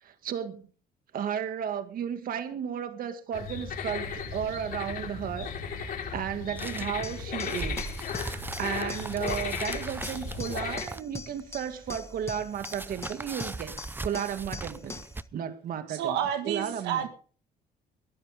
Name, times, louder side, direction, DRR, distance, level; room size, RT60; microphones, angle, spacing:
voice 1, 0.0-0.6 1.1-5.5 5.8-13.7 14.0-15.0 15.3-16.2 16.4-17.1, right 8 dB, 60° right, 2.1 m, -34 dB
sound 1, 3.3-10.8, left 6 dB, 60° left, 4.5 m, -36 dB
sound 2, 6.6-15.2, right 3 dB, 10° right, 0.6 m, -40 dB
sound 3, 7.0-15.2, left 3 dB, 15° left, 1.6 m, -42 dB
voice 2, 15.9-17.1, right 9 dB, 90° right, 1.6 m, -30 dB
21.0 x 12.5 x 3.6 m
cardioid pair, 110°, 17 cm